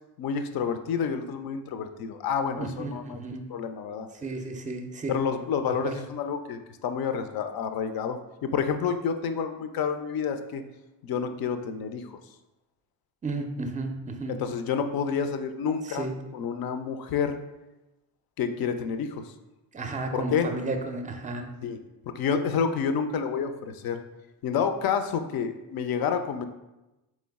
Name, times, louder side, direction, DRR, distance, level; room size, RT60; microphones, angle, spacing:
voice 1, 0.2-3.2 3.5-4.1 5.1-10.6 11.0-12.1 14.3-16.1 16.3-17.4 18.4-19.3 20.1-20.5 21.6-21.8 22.1-24.0 24.4-26.4, left 6 dB, 50° left, 8 dB, 0.5 m, -29 dB
voice 2, 2.6-3.5 4.2-5.2 5.8-5.9 13.2-14.3 15.8-16.1 19.7-21.5, right 3 dB, 15° right, 5 dB, 0.5 m, -33 dB
3.7 x 3.2 x 3.5 m, 1.0 s
supercardioid pair, 65°, 49 cm